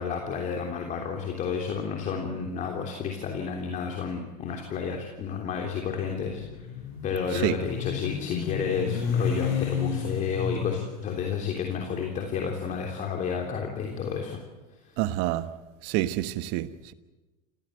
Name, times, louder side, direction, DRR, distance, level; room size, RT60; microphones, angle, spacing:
voice 1, 0.0-6.7 7.0-14.4, left 6 dB, 40° left, 3.3 m, -31 dB
Motorcycle, 5.8-14.0, left 6 dB, 60° left, 5.5 m, -32 dB
voice 2, 15.0-15.5 15.8-16.9, right 15 dB, 55° right, 1.3 m, -28 dB
28.0 x 16.5 x 7.9 m
hypercardioid pair, 95°, 19 cm